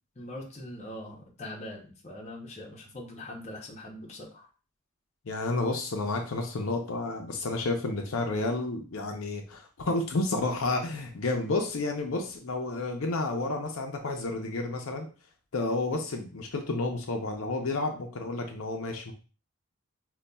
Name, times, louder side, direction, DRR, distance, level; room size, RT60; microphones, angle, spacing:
voice 1, 0.2-4.5, left 1 dB, 30° left, -1 dB, 0.7 m, -42 dB
voice 2, 5.3-15.1 15.5-19.1, left 2 dB, 70° left, 3 dB, 0.6 m, -31 dB
5.2 x 2.3 x 2.2 m, 0.36 s
head